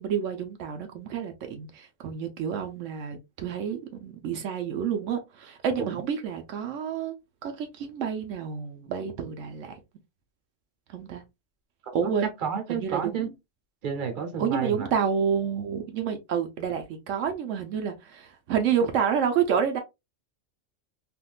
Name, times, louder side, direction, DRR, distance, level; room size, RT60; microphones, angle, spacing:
voice 1, 0.0-7.1 7.4-9.8 10.9-11.2 11.9-12.3 12.7-13.3 14.4-19.8, right 7 dB, 80° right, 1.0 m, -29 dB
voice 2, 12.4-13.3 13.8-14.9, right 7 dB, 45° right, 0.9 m, -30 dB
3.5 x 2.5 x 2.3 m
omnidirectional pair, 1.3 m